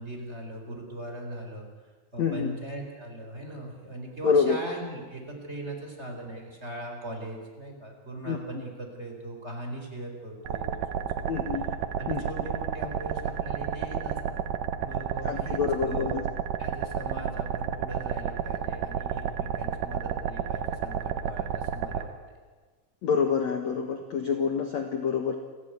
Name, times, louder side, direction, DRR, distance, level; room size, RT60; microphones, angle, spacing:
voice 1, 0.0-1.7 2.1-11.4 12.0-14.4 14.8-16.1 16.6-22.1, right 1 dB, 15° right, 2 dB, 3.7 m, -39 dB
voice 2, 2.2-2.5 4.2-4.6 8.2-8.4 11.3-11.6 12.1-12.2 15.2-16.2 23.0-25.4, left 6 dB, 70° left, 5 dB, 1.7 m, -26 dB
sound 1, 10.5-22.0, right 9 dB, 75° right, 1.9 m, -31 dB
29.0 x 15.0 x 9.5 m, 1.4 s
omnidirectional pair, 5.5 m